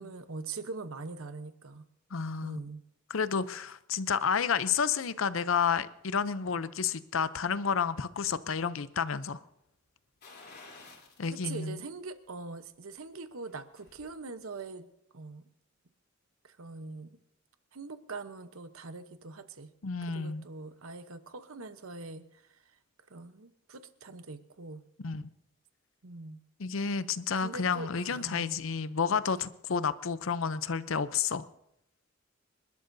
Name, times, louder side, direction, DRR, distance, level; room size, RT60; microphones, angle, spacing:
voice 1, 0.0-1.9 2.4-2.8 10.4-10.6 11.3-14.9 15.1-15.4 16.4-17.1 17.7-19.7 20.0-22.6 23.1-24.8 26.0-26.4 27.4-28.6, right 3 dB, 85° right, 1.0 m, -43 dB
voice 2, 2.1-2.6 3.1-9.4 11.2-11.8 19.8-20.4 25.0-25.3 26.6-31.4, left 6 dB, 70° left, 0.6 m, -30 dB
sound 1, 10.2-11.3 11.7-11.8 13.3-14.1 14.4-14.5, left 3 dB, 50° left, 3.5 m, -52 dB
27.5 x 12.0 x 2.7 m
head